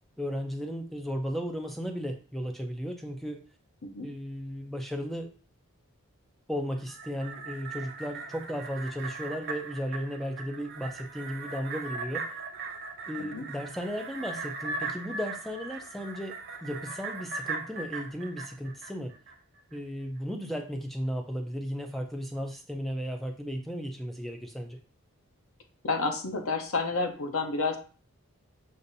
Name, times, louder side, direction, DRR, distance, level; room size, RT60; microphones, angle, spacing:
voice 1, 0.2-3.4 4.0-5.3 6.5-12.3 13.1-19.1 19.7-24.8, equal, ahead, 3 dB, 0.4 m, -35 dB
sound 1, 6.8-19.3 19.7-19.8, right 4 dB, 45° right, 0.6 m, -39 dB
voice 2, 25.8-27.8, left 3 dB, 80° left, 5 dB, 0.7 m, -30 dB
6.6 x 2.5 x 2.7 m, 0.38 s
head